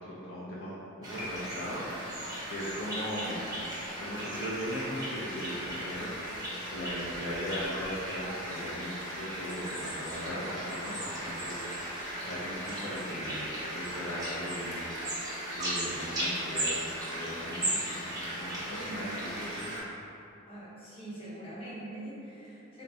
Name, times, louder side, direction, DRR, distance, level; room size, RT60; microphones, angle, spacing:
voice 1, 0.0-0.7 1.1-1.8 2.4-3.5 4.0-6.1 6.7-11.9 12.2-14.9 15.5-16.8 17.1-19.7, equal, 65° left, -9 dB, 0.7 m, -38 dB
sound 1, 1.0-19.8, right 1 dB, 20° right, 1.0 m, -36 dB
voice 2, 18.7-19.2 20.5-22.8, right 1 dB, 25° left, -9 dB, 1.1 m, -43 dB
4.2 x 2.8 x 3.3 m, 2.9 s
head